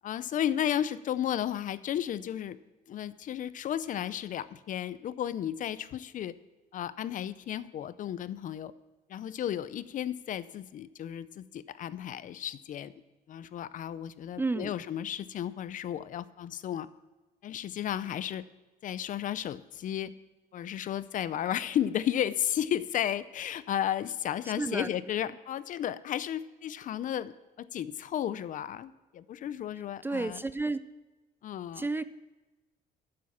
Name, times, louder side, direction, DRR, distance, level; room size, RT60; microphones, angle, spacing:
voice 1, 0.0-2.6 2.9-6.3 6.7-8.7 9.1-12.9 13.3-16.9 17.4-18.4 18.8-20.1 20.5-27.3 27.6-30.4 31.4-31.9, left 10 dB, 50° left, 16 dB, 0.5 m, -33 dB
voice 2, 14.4-14.7 24.6-24.9 30.0-30.8 31.8-32.0, right 3 dB, 10° right, 14 dB, 0.4 m, -31 dB
9.7 x 7.7 x 7.2 m, 1.2 s
cardioid pair, 110°, 17 cm